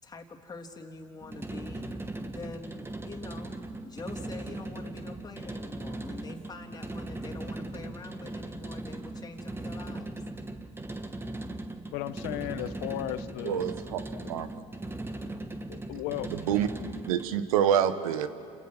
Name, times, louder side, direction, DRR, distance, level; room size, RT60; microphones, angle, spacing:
voice 1, 0.0-3.5 3.8-10.1, left 3 dB, 20° left, 1 dB, 3.2 m, -45 dB
sound 1, 1.2-17.4, right 2 dB, 15° right, 1.8 m, -39 dB
voice 2, 11.9-13.6 14.2-14.3 15.7-16.3, left 14 dB, 65° left, 12 dB, 1.2 m, -35 dB
voice 3, 13.4-14.0 14.3-14.5 16.3-16.7 17.1-18.3, right 9 dB, 80° right, 11 dB, 1.4 m, -26 dB
29.5 x 28.0 x 6.3 m, 2.3 s
hypercardioid pair, 80°, 18 cm